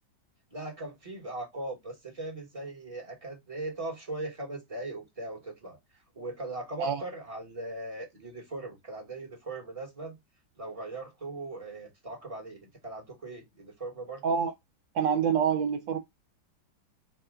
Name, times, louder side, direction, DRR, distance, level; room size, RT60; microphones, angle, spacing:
voice 1, 0.5-10.2 10.6-14.2, right 2 dB, 25° right, 0.9 m, -39 dB
voice 2, 14.9-16.0, right 7 dB, 75° right, 1.2 m, -26 dB
4.2 x 2.2 x 3.6 m
omnidirectional pair, 2.1 m